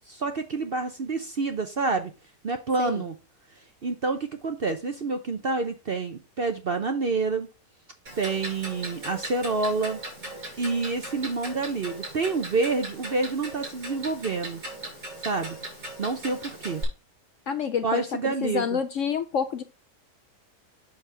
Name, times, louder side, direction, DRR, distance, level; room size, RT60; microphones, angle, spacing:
voice 1, 0.1-2.1 2.4-3.1 3.8-7.5 8.2-10.0 10.6-14.6 15.2-15.6 16.0-16.8 17.8-18.8, right 3 dB, 45° right, 7 dB, 0.8 m, -28 dB
Clock, 8.1-16.8, right 1 dB, 70° right, 5.3 m, -38 dB
voice 2, 17.5-19.6, left 7 dB, 65° left, 10 dB, 0.8 m, -28 dB
7.3 x 6.5 x 3.4 m, 0.30 s
omnidirectional pair, 1.8 m